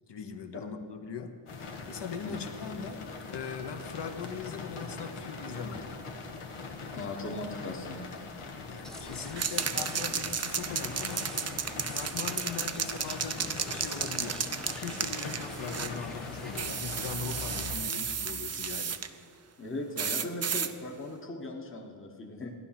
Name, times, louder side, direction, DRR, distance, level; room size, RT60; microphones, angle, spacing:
voice 1, 0.1-1.4 1.9-5.8 8.7-11.3 11.8-13.4 13.7-14.4 14.7-19.0, left 6 dB, 55° left, 7 dB, 1.0 m, -40 dB
sound 1, 1.5-17.8, left 4 dB, 85° left, 1.5 m, -41 dB
voice 2, 6.9-8.0 19.6-22.5, left 2 dB, 25° left, 2 dB, 1.2 m, -38 dB
sound 2, 8.8-16.6, equal, ahead, 0.7 m, -47 dB
sound 3, 9.4-16.0 16.6-19.1 20.0-20.7, right 7 dB, 35° right, 0.5 m, -33 dB
15.0 x 10.5 x 5.8 m, 2.1 s
wide cardioid pair, 155°, 49 cm